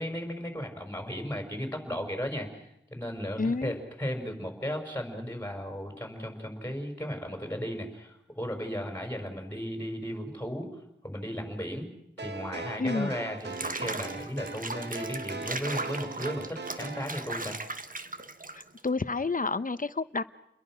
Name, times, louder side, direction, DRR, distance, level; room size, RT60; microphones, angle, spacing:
voice 1, 0.0-10.7 11.0-11.9 12.2-17.6, equal, 10° left, 4 dB, 5.8 m, -35 dB
voice 2, 3.4-3.8 12.8-13.1 18.6-20.2, left 3 dB, 45° left, 13 dB, 1.0 m, -30 dB
sound 1, 12.2-17.1, right 3 dB, 65° right, 1.9 m, -39 dB
Water / Bathtub (filling or washing), 13.4-18.9, right 3 dB, 45° right, 1.4 m, -38 dB
30.0 x 22.0 x 6.4 m, 0.78 s
wide cardioid pair, 70°, 19 cm